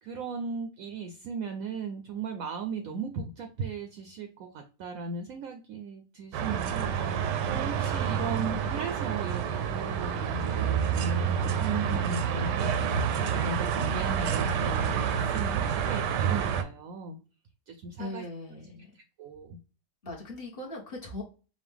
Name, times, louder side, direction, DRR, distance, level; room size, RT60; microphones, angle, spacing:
voice 1, 0.0-17.2 17.7-18.2 18.9-19.6, right 4 dB, 70° right, 6 dB, 0.8 m, -37 dB
sound 1, 6.3-16.6, right 7 dB, 85° right, 1.2 m, -28 dB
voice 2, 18.0-18.8 20.0-21.2, left 2 dB, 40° left, -2 dB, 1.0 m, -39 dB
5.2 x 2.3 x 3.4 m, 0.34 s
omnidirectional pair, 1.8 m